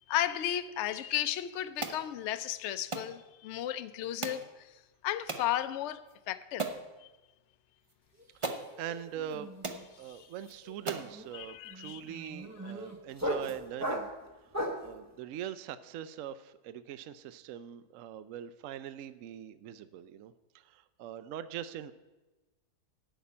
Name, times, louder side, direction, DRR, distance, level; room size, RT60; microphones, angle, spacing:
voice 1, 0.1-4.7 5.0-6.7 7.0-7.1 10.1-10.3 11.4-12.0 12.6-12.7, left 12 dB, 75° left, 0.6 m, -34 dB
sound 1, 1.8-2.0 2.9-3.1 4.2-4.5 5.3-5.5 6.1-6.2 6.6-6.8 7.9-8.0 8.4-8.7 9.3-9.4 9.6-9.8 10.4-10.5 10.9-11.1, right 3 dB, 35° right, 0.5 m, -36 dB
sound 2, 8.1-8.5 8.7-14.9, equal, 15° right, 0.8 m, -38 dB
voice 2, 8.5-9.5 10.0-14.1 14.8-21.9, right 10 dB, 70° right, 0.8 m, -42 dB
11.0 x 5.9 x 8.5 m
omnidirectional pair, 1.8 m